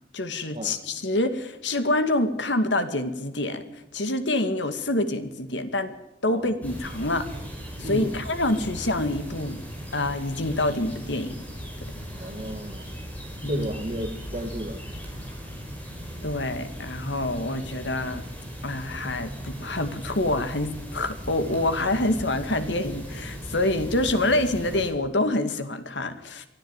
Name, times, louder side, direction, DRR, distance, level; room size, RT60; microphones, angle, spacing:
voice 1, 0.1-3.6 3.9-6.0 6.2-7.3 7.8-9.6 9.9-11.3 13.4-13.7 16.2-18.2 18.6-26.5, left 2 dB, 90° left, 9 dB, 2.2 m, -26 dB
sound 1, 6.6-24.9, equal, 10° left, 6.0 m, -38 dB
voice 2, 7.8-8.2 12.1-12.9 13.4-14.8, equal, 35° right, 3 dB, 1.9 m, -33 dB
23.5 x 13.5 x 8.9 m, 0.89 s
head